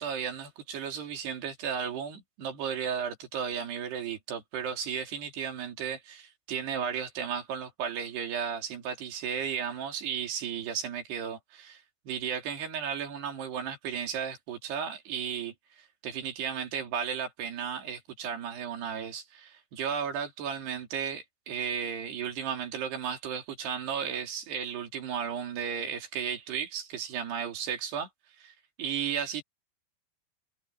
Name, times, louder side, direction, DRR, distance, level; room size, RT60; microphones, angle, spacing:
voice 1, 0.0-15.5 16.0-28.1 28.4-29.4, right 7 dB, 70° right, 5.3 m, -34 dB
omnidirectional pair, 4.9 m